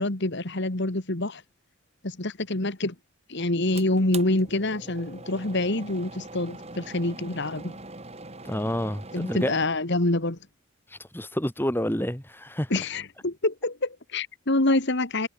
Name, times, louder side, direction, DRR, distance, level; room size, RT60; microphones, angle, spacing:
voice 1, 0.0-1.4 2.0-2.9 3.3-7.8 9.1-10.4 12.7-15.3, left 2 dB, 50° left, 1.9 m, -26 dB
sound 1, 3.7-9.7, right 3 dB, 30° right, 4.6 m, -42 dB
voice 2, 8.4-9.5 10.9-12.7, equal, 10° left, 2.8 m, -29 dB
head